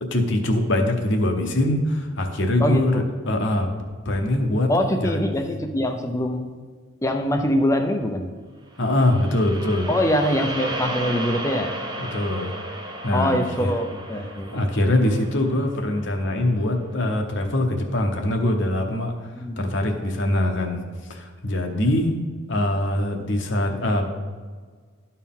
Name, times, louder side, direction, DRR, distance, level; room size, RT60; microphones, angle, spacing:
voice 1, 0.1-3.7 4.0-5.3 8.8-9.9 11.9-12.5 13.0-13.7 14.5-20.8 21.1-22.1 22.5-24.2, left 1 dB, 55° left, 3 dB, 0.9 m, -23 dB
voice 2, 2.6-3.0 4.7-6.5 7.0-8.3 9.9-11.7 13.1-14.5 19.3-19.6, equal, 15° left, 5 dB, 0.5 m, -23 dB
sound 1, 8.8-17.1, right 1 dB, 20° right, 0.7 m, -34 dB
12.5 x 4.5 x 3.6 m, 1.5 s
head